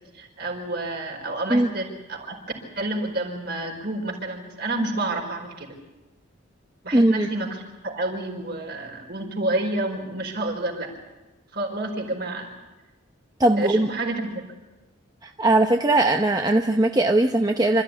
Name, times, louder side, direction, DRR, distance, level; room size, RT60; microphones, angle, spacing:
voice 1, 0.1-2.4 2.8-5.8 6.8-10.9 11.5-12.5 13.5-14.4, right 2 dB, 50° right, 1 dB, 4.8 m, -29 dB
voice 2, 6.9-7.3 13.4-13.9 15.4-17.8, right 2 dB, 20° right, 4 dB, 0.7 m, -19 dB
26.5 x 14.0 x 9.9 m, 1.1 s
head